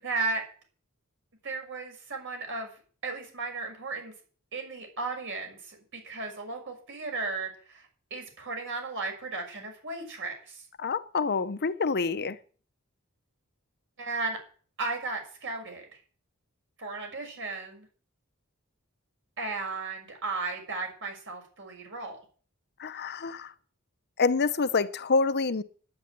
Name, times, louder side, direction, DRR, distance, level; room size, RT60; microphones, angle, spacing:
voice 1, 0.0-0.4 1.4-2.7 3.0-4.1 4.5-7.8 8.1-10.6 14.0-14.4 14.8-16.0 16.8-17.9 19.4-22.2, right 3 dB, 60° right, 6.5 m, -35 dB
voice 2, 10.8-12.4 22.8-23.5 24.2-25.6, left 4 dB, 50° left, 0.8 m, -27 dB
10.5 x 9.6 x 8.9 m
head